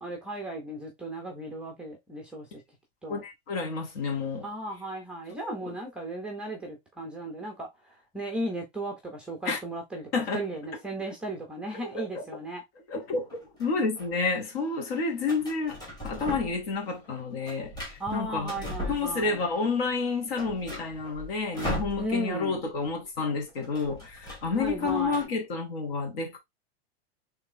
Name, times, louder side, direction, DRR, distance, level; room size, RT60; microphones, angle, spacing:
voice 1, 0.0-2.6 3.0-3.2 4.4-12.6 18.0-19.5 22.0-22.6 24.5-25.3, right 1 dB, 5° right, 0.5 m, -36 dB
voice 2, 3.1-4.5 5.4-5.5 9.5-9.6 10.1-10.4 11.9-12.2 12.9-13.3 13.6-15.8 16.0-18.5 18.9-26.4, left 4 dB, 65° left, 2.0 m, -30 dB
sound 1, 13.3-14.1 15.3-16.7 17.0-19.5 19.9-20.0 20.2-22.5 22.7-22.9 23.1-25.2, left 1 dB, 10° left, 1.4 m, -38 dB
3.5 x 3.3 x 3.7 m
supercardioid pair, 170°, 31 cm